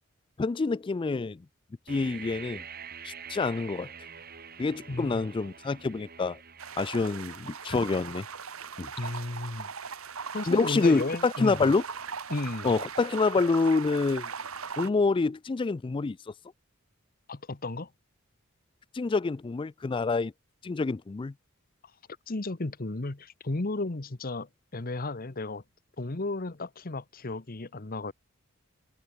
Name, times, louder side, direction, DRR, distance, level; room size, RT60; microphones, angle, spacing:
voice 1, 0.4-1.4 1.9-2.6 3.0-3.9 4.6-6.4 6.8-8.3 8.8-8.9 10.5-11.8 12.6-14.3 14.8-16.2 18.9-20.3 20.6-21.3, left 3 dB, 25° left, 0.3 m, -27 dB
sound 1, 1.9-13.7, right 7 dB, 45° right, 5.3 m, -49 dB
voice 2, 4.9-5.3 9.0-9.7 10.3-11.7 12.3-12.8 17.3-17.9 22.3-25.6 26.0-28.1, left 2 dB, 45° left, 1.1 m, -34 dB
sound 2, 6.6-14.9, right 6 dB, 90° right, 1.9 m, -39 dB
head